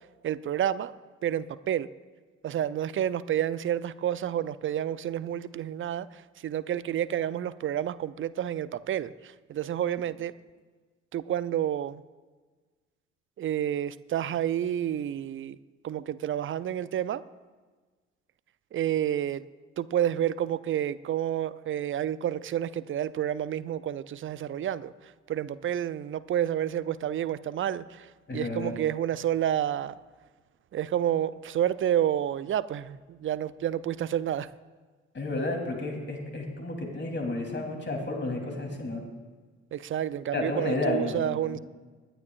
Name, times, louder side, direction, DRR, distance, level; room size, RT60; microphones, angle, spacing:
voice 1, 0.2-0.9 1.2-1.9 2.4-10.4 11.1-12.0 13.4-15.6 15.8-17.2 18.7-19.4 19.8-24.9 25.3-30.0 30.7-34.5 39.7-41.6, right 10 dB, 35° right, 17 dB, 0.6 m, -29 dB
voice 2, 28.3-28.7 35.1-39.0 40.3-41.6, left 2 dB, 30° left, 2 dB, 3.3 m, -31 dB
26.0 x 10.0 x 2.5 m, 1.4 s
figure-of-eight pair, 45°, 36 cm